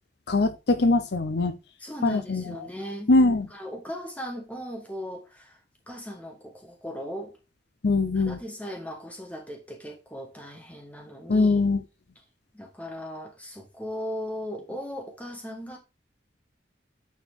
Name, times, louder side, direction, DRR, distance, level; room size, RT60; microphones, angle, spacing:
voice 1, 0.3-1.6 2.0-2.4 3.1-3.5 7.8-8.4 11.3-11.8, left 2 dB, 60° left, 0.6 m, -22 dB
voice 2, 1.8-3.1 3.5-5.6 5.9-7.4 8.2-11.6 12.5-15.8, equal, 10° left, 1.7 m, -37 dB
9.0 x 4.3 x 3.5 m
head